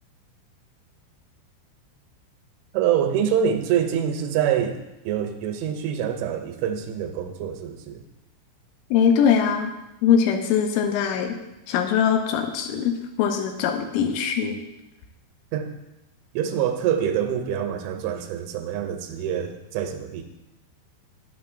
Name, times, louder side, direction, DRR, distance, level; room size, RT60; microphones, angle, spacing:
voice 1, 2.7-8.0 15.5-15.7 16.3-20.2, right 9 dB, 85° right, 5 dB, 2.9 m, -25 dB
voice 2, 8.9-9.7 10.0-11.4 11.7-14.6, left 7 dB, 90° left, 5 dB, 3.2 m, -22 dB
9.3 x 8.5 x 2.5 m, 0.95 s
omnidirectional pair, 5.4 m